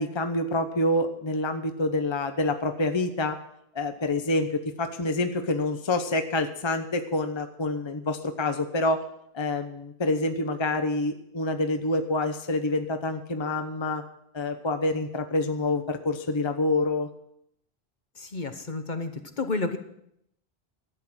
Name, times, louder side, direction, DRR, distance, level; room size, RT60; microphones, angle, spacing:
voice 1, 0.0-3.4 3.7-9.0 9.3-14.0 14.3-17.1, left 2 dB, 30° left, 7 dB, 0.9 m, -27 dB
voice 2, 18.1-19.8, left 3 dB, 50° left, 8 dB, 1.1 m, -31 dB
13.0 x 8.5 x 7.5 m, 0.75 s
omnidirectional pair, 1.1 m